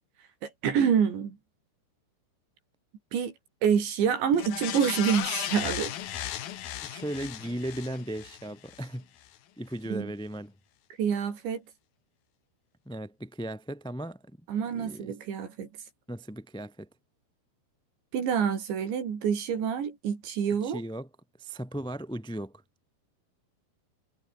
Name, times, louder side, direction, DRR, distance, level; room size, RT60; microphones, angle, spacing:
voice 1, 0.6-1.4 3.1-3.3 3.6-6.0 9.9-10.1 11.0-11.6 14.5-15.7 18.1-20.8, right 7 dB, 60° right, 6.0 m, -27 dB
sound 1, 4.3-8.9 9.3-9.4, left 12 dB, 60° left, 2.7 m, -36 dB
voice 2, 6.8-9.1 9.6-10.5 12.8-14.2 14.7-15.2 16.1-16.9 20.6-21.1 21.4-22.6, right 1 dB, 5° left, 0.5 m, -36 dB
omnidirectional pair, 5.9 m